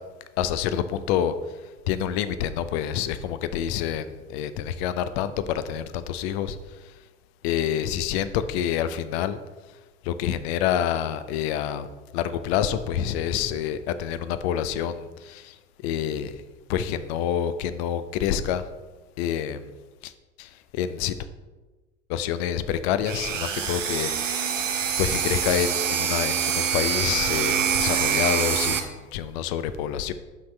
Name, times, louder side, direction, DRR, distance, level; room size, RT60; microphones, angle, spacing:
voice 1, 0.4-1.3 1.9-6.6 6.8-6.9 7.4-9.4 10.0-11.9 12.1-15.6 15.8-16.4 16.7-18.7 19.2-19.7 20.0-20.1 20.4-21.2 22.1-24.6 25.0-30.1, left 9 dB, 55° left, 12 dB, 0.6 m, -27 dB
sound 1, 23.1-28.8, right 8 dB, 85° right, 0.8 m, -25 dB
11.5 x 4.2 x 3.3 m, 1.2 s
figure-of-eight pair, 70°, 37 cm